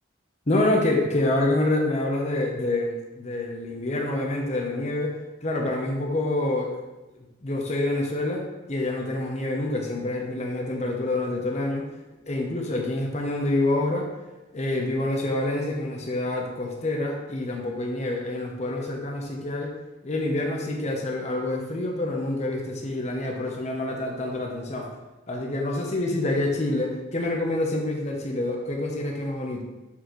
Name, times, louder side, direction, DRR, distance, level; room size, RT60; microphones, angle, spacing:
voice 1, 0.5-6.8 7.4-11.9 12.3-14.1 14.5-19.7 20.0-24.9 25.3-29.6, left 2 dB, 35° left, 1 dB, 0.8 m, -27 dB
7.3 x 4.2 x 3.1 m, 1.1 s
head